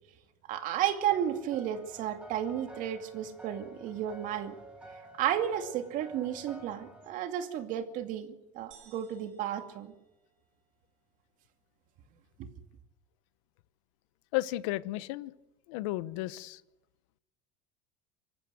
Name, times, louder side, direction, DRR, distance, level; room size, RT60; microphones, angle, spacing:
voice 1, 0.5-4.6 5.2-9.9 12.4-12.5, right 10 dB, 55° right, 7 dB, 2.5 m, -33 dB
sound 1, 1.1-7.1, right 1 dB, 5° right, 5.2 m, -50 dB
sound 2, 8.7-10.7, right 8 dB, 90° right, 5.9 m, -60 dB
voice 2, 14.3-15.3 15.7-16.6, left 17 dB, 80° left, 17 dB, 1.0 m, -33 dB
25.5 x 14.5 x 7.9 m, 0.97 s
supercardioid pair, 130°, 16 cm